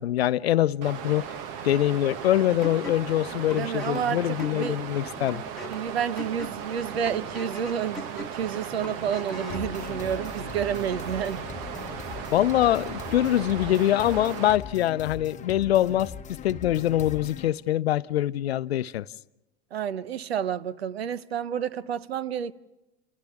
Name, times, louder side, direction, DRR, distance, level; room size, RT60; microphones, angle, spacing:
voice 1, 0.0-1.3 1.6-5.4 12.3-19.1, left 13 dB, 85° left, 0.6 m, -24 dB
Water, 0.8-14.6, right 7 dB, 60° right, 1.5 m, -37 dB
sound 1, 2.6-9.7, left 2 dB, ahead, 3.0 m, -41 dB
voice 2, 3.5-4.8 5.7-11.4 19.7-22.5, right 8 dB, 85° right, 0.9 m, -30 dB
sound 2, 9.5-17.5, left 7 dB, 25° left, 1.0 m, -40 dB
29.5 x 28.5 x 3.6 m
hypercardioid pair, 95°, 30 cm